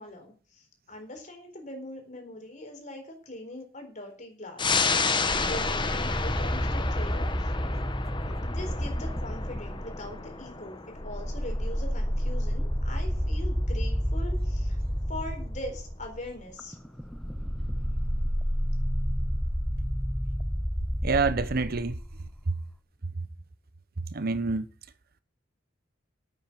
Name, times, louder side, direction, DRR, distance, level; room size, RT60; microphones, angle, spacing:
voice 1, 0.0-4.8 5.4-7.5 8.4-14.8 15.1-16.8, left 1 dB, 40° left, 4.2 m, -41 dB
sound 1, 4.6-15.6 16.0-16.1, left 4 dB, 25° left, 1.0 m, -32 dB
sound 2, 5.3-10.5 10.9-22.5, equal, ahead, 0.6 m, -30 dB
voice 2, 21.0-21.9 24.1-24.6, right 4 dB, 55° right, 0.9 m, -26 dB
9.1 x 9.0 x 7.5 m
head